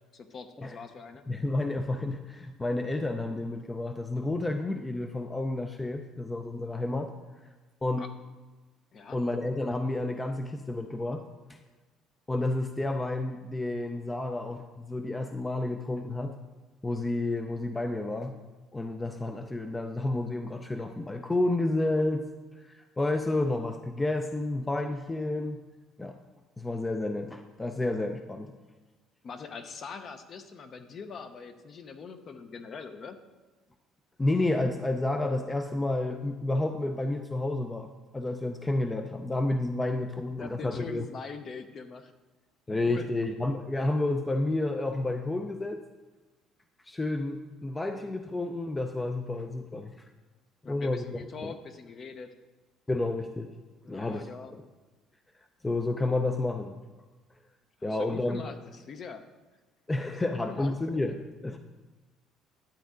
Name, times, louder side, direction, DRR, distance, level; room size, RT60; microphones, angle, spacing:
voice 1, 0.1-1.3 8.0-8.1 8.9-9.2 29.2-33.2 40.4-42.1 42.7-43.1 50.6-52.3 53.8-54.5 57.8-59.2 60.1-60.7 61.5-61.6, left 5 dB, 40° left, 8 dB, 0.9 m, -42 dB
voice 2, 1.3-7.1 7.8-8.0 9.1-11.2 11.5-11.6 12.3-16.3 16.8-18.4 18.7-22.2 22.6-25.6 26.0-26.2 26.6-28.5 34.2-41.1 42.7-45.8 46.8-49.9 50.7-51.1 51.4-51.5 52.9-53.5 53.9-54.3 54.5-54.6 55.6-56.8 57.8-58.4 59.9-61.6, left 2 dB, 15° left, 6 dB, 0.5 m, -30 dB
11.5 x 8.1 x 3.8 m, 1.2 s
cardioid pair, 115°, 0 cm